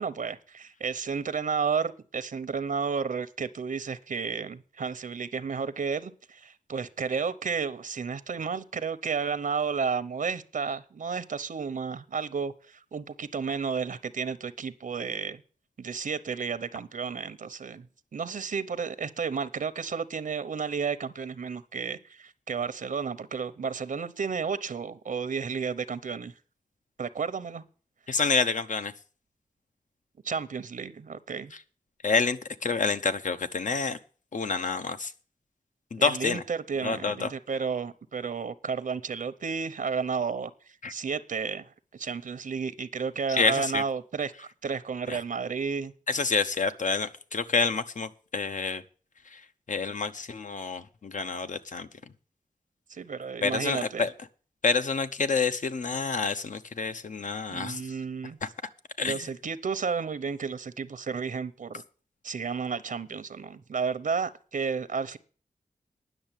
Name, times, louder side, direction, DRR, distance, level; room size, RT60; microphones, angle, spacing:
voice 1, 0.0-15.4 15.8-17.9 18.1-26.3 27.0-27.6 30.2-31.5 36.0-40.5 40.9-45.9 52.9-54.1 57.5-58.4 59.0-61.8 62.2-65.2, right 5 dB, 80° right, 13 dB, 0.8 m, -32 dB
voice 2, 28.1-28.9 32.0-34.0 34.3-35.1 35.9-36.4 36.8-37.3 40.8-40.9 43.3-43.8 45.1-45.2 46.1-48.8 49.3-49.4 49.7-51.9 53.4-54.1 54.6-57.8 58.4-58.5 59.0-59.2, left 4 dB, 70° left, 10 dB, 0.9 m, -28 dB
10.0 x 6.5 x 9.0 m, 0.40 s
wide cardioid pair, 90°, 14 cm